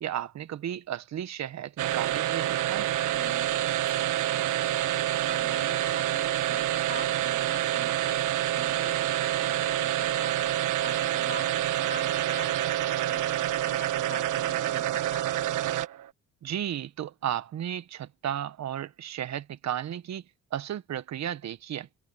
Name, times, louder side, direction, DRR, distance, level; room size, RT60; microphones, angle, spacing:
voice 1, 0.0-2.9 16.4-20.2 20.5-21.9, right 10 dB, 65° right, 1.3 m, -34 dB
sound 1, 1.8-16.1, right 12 dB, 85° right, 1.4 m, -27 dB
voice 2, 3.1-3.5 4.6-10.4 10.8-15.3, left 6 dB, 40° left, 4.5 m, -46 dB
cardioid pair, 90°, 30 cm